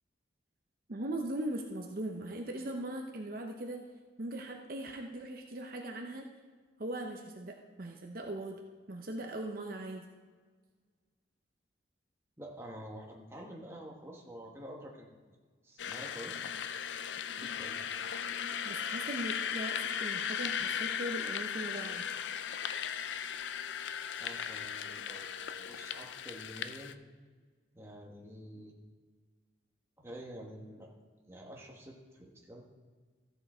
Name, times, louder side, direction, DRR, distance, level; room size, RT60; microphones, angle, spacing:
voice 1, 0.9-3.9 4.2-6.3 6.8-8.6 8.9-10.0 18.6-22.0, right 1 dB, 45° right, 2 dB, 0.7 m, -39 dB
voice 2, 12.4-15.4 15.6-16.4 17.3-17.9 24.1-26.9 27.7-28.7 30.0-30.9 31.3-32.6, equal, 15° right, -1 dB, 1.3 m, -48 dB
sound 1, 15.8-26.9, left 8 dB, 70° left, 0.4 m, -37 dB
14.0 x 6.8 x 4.4 m, 1.5 s
head